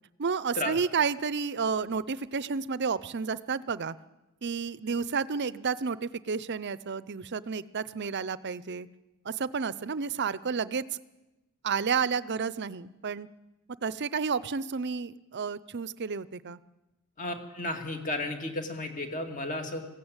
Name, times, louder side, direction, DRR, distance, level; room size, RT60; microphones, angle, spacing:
voice 1, 0.2-3.9 4.4-8.9 9.2-10.8 11.6-13.3 13.8-16.6, right 5 dB, 50° right, 17 dB, 0.6 m, -31 dB
voice 2, 17.2-19.8, left 2 dB, 35° left, 5 dB, 2.3 m, -33 dB
20.5 x 15.5 x 8.9 m, 1.0 s
head